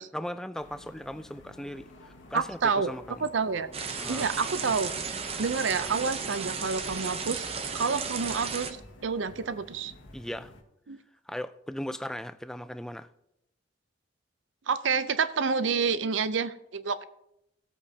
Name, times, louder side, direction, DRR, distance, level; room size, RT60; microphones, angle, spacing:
voice 1, 0.0-3.3 4.0-4.3 10.1-10.5 11.3-13.1, equal, 5° left, 0.3 m, -38 dB
sound 1, 0.5-10.6, left 1 dB, 85° left, 1.6 m, -52 dB
voice 2, 2.3-2.9 3.2-3.7 4.1-4.9 5.4-7.4 7.7-8.8 9.0-9.9 10.9-11.0 14.7-17.0, right 5 dB, 80° right, 0.6 m, -28 dB
sound 2, 3.7-8.7, right 5 dB, 30° right, 0.7 m, -34 dB
17.0 x 8.4 x 2.8 m
head